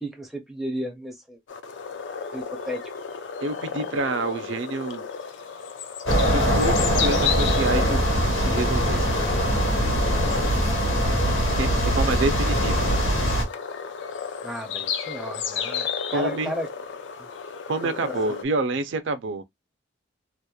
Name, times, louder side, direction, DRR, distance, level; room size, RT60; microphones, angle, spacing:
voice 1, 0.0-1.4 2.3-2.8 11.6-11.9 14.4-16.7 17.8-18.2, equal, ahead, 0.4 m, -34 dB
sound 1, 1.5-18.4, left 7 dB, 65° left, 0.4 m, -33 dB
voice 2, 3.4-5.0 6.3-9.2 11.6-12.9 16.1-16.5 17.7-19.4, right 3 dB, 65° right, 0.4 m, -28 dB
sound 2, 6.1-13.4, equal, 85° left, 1.1 m, -22 dB
2.8 x 2.1 x 2.2 m
head